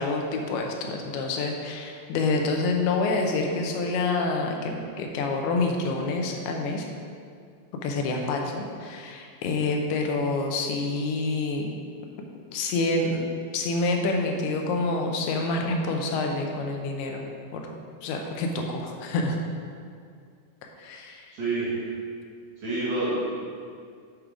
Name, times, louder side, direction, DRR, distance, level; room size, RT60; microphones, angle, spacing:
voice 1, 0.0-6.9 7.8-11.7 12.5-13.2 13.5-17.3 17.5-17.6 18.0-19.4 20.6-21.3, left 3 dB, 85° left, 2 dB, 2.7 m, -27 dB
voice 2, 21.3-21.7 22.6-23.2, right 2 dB, 55° right, -9 dB, 2.2 m, -27 dB
7.9 x 4.7 x 4.8 m, 2.2 s
omnidirectional pair, 4.5 m